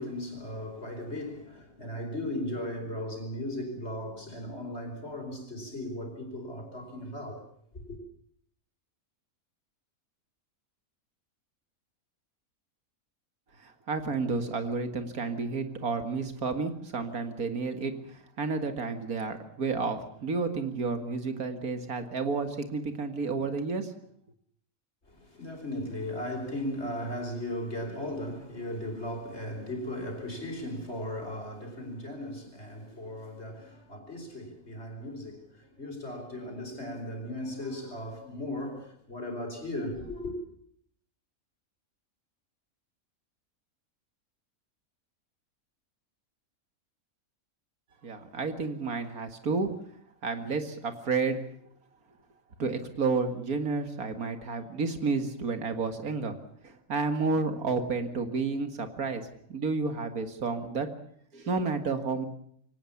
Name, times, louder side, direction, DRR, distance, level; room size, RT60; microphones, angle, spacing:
voice 1, 0.0-7.4 7.7-8.0 25.1-40.3, left 1 dB, 50° left, 5.1 m, -37 dB
voice 2, 13.6-23.9 48.0-49.7 50.2-51.4 52.6-56.3 56.6-60.9 61.3-62.3, right 4 dB, 85° right, 2.4 m, -31 dB
23.5 x 18.0 x 7.2 m
omnidirectional pair, 1.5 m